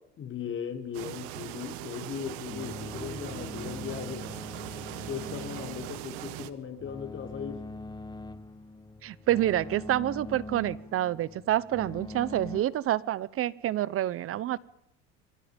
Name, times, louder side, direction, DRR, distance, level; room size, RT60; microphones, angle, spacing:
voice 1, 0.2-4.3 5.0-7.7, left 8 dB, 40° left, 6 dB, 3.8 m, -38 dB
sound 1, 0.9-6.5, right 15 dB, 80° right, 1.8 m, -40 dB
sound 2, 2.5-12.6, left 2 dB, 15° left, 1.1 m, -42 dB
voice 2, 9.0-14.6, right 13 dB, 45° right, 20 dB, 1.1 m, -28 dB
27.0 x 24.5 x 5.4 m, 0.78 s
supercardioid pair, 110°, 31 cm